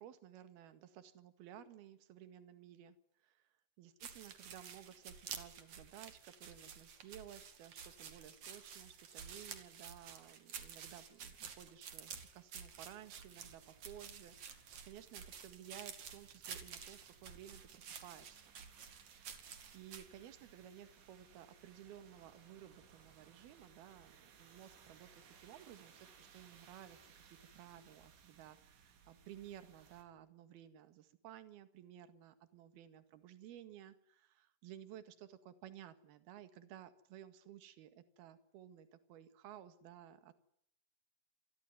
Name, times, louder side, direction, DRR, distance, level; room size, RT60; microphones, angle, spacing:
voice 1, 0.0-3.5 3.8-18.4 19.2-19.3 19.7-27.0 27.6-40.3, right 11 dB, 65° right, 11 dB, 3.5 m, -56 dB
sound 1, 4.0-20.1, right 7 dB, 45° right, 3.2 m, -51 dB
sound 2, 12.7-30.0, right 6 dB, 90° right, 5.8 m, -64 dB
28.0 x 21.5 x 9.2 m, 0.71 s
omnidirectional pair, 5.1 m